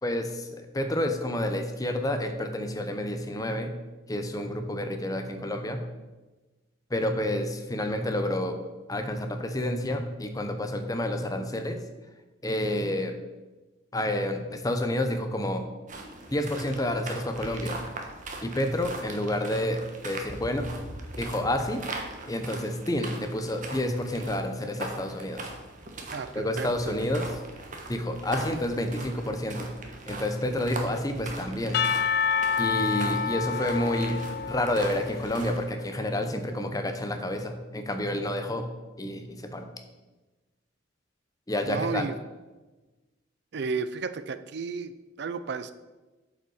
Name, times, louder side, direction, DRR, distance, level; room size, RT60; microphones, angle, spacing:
voice 1, 0.0-3.7 4.1-5.8 6.9-8.6 8.9-11.8 12.4-13.2 13.9-15.6 16.3-17.8 18.4-20.7 21.2-21.8 22.3-25.5 26.3-27.3 27.9-29.7 30.1-31.8 32.6-34.2 34.5-38.6 39.0-39.7 41.5-42.0, left 1 dB, 20° left, 6 dB, 0.8 m, -29 dB
sound 1, 15.9-35.6, right 2 dB, 40° right, 1.3 m, -40 dB
voice 2, 26.1-27.1 41.7-42.1 43.5-45.7, right 5 dB, 60° right, 12 dB, 0.4 m, -33 dB
Percussion / Church bell, 31.7-35.9, left 6 dB, 55° left, 0.4 m, -28 dB
8.4 x 5.5 x 6.4 m, 1.2 s
head